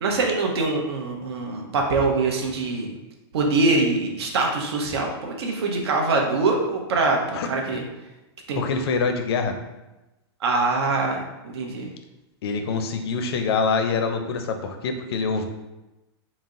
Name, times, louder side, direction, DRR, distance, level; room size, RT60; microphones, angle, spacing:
voice 1, 0.0-2.9 3.3-7.8 8.5-8.6 10.4-11.9, right 3 dB, 70° right, 1 dB, 0.7 m, -23 dB
voice 2, 7.3-7.8 8.5-9.5 12.4-15.5, left 4 dB, 65° left, 6 dB, 0.5 m, -25 dB
4.0 x 2.0 x 3.6 m, 1.0 s
supercardioid pair, 170°, 14 cm